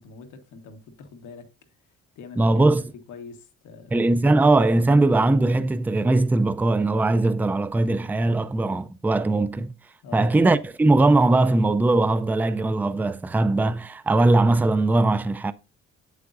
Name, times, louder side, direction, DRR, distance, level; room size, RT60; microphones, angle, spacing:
voice 1, 0.0-1.5 2.1-4.0 10.0-10.3, left 5 dB, 80° left, 1.3 m, -43 dB
voice 2, 2.4-2.8 3.9-9.7 10.1-15.5, right 2 dB, 5° right, 0.4 m, -20 dB
8.2 x 7.7 x 2.5 m
cardioid pair, 90°, 30 cm